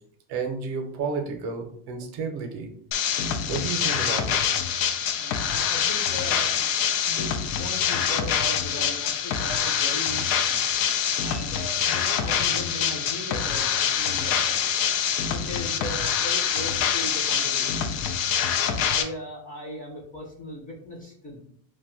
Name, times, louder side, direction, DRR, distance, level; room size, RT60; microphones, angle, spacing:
voice 1, 0.3-2.7 3.5-4.4, right 5 dB, 50° right, 5 dB, 0.6 m, -31 dB
sound 1, 2.9-19.0, left 8 dB, 75° left, 0.6 m, -25 dB
voice 2, 5.2-6.7 7.0-7.3 7.6-10.6 11.2-14.9 15.3-17.9 18.5-21.4, left 1 dB, 20° left, -2 dB, 0.5 m, -38 dB
2.5 x 2.2 x 3.7 m, 0.64 s
cardioid pair, 140°, 48 cm